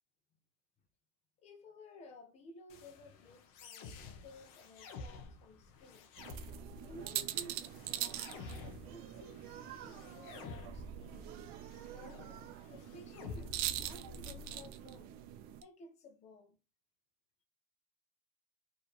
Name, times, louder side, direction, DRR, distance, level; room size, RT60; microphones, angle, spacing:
voice 1, 1.4-6.1 6.8-8.3 8.6-11.3 11.9-15.1 15.6-16.6, left 2 dB, 35° left, 1.0 m, -55 dB
sound 1, 2.7-14.7, left 4 dB, 70° left, 1.1 m, -51 dB
sound 2, 6.2-15.6, right 12 dB, 50° right, 0.6 m, -43 dB
4.9 x 3.1 x 3.2 m
cardioid pair, 165°, 19 cm